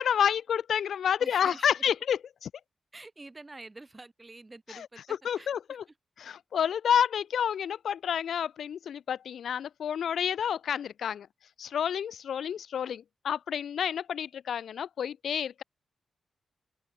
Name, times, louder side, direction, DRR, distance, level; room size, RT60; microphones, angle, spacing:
voice 1, 0.0-2.5 4.7-4.9 5.2-5.8 6.2-11.3 11.6-15.6, left 8 dB, 80° left, 0.5 m, -29 dB
voice 2, 1.2-1.7 2.9-5.8, right 2 dB, 25° right, 7.3 m, -48 dB
open air
cardioid pair, 65°, 0 cm